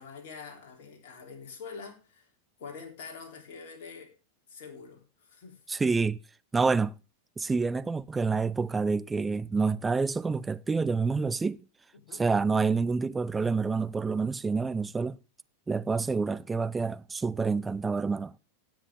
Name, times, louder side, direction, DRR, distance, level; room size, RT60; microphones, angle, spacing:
voice 1, 0.0-2.3 2.6-4.1 4.5-5.6 11.9-12.2, left 5 dB, 50° left, 3.6 m, -45 dB
voice 2, 5.7-6.2 6.5-6.9 7.4-11.6 12.1-15.2 15.7-18.4, right 4 dB, 10° right, 0.5 m, -28 dB
16.5 x 7.4 x 3.7 m
figure-of-eight pair, 90°, 0 cm